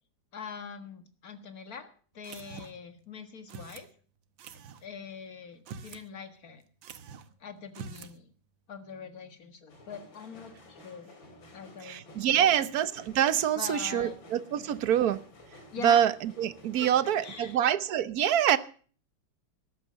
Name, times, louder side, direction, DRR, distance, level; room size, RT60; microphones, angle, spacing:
voice 1, 0.3-3.9 4.8-6.6 7.4-8.3 8.7-11.1 11.5-12.0 12.4-12.7 13.6-14.2 14.6-14.7 15.7-16.0 16.8-16.9 17.2-17.6, left 6 dB, 50° left, 2.1 m, -43 dB
sound 1, 2.2-2.9 3.5-3.9 4.4-4.8 5.5-6.1 6.4-6.5 6.8-7.3 7.7-8.2, right 6 dB, 85° right, 1.8 m, -45 dB
sound 2, 9.7-17.5, left 1 dB, 85° left, 3.7 m, -53 dB
voice 2, 11.8-15.2 15.8-18.6, right 10 dB, 60° right, 1.2 m, -25 dB
13.5 x 11.0 x 6.2 m
omnidirectional pair, 2.0 m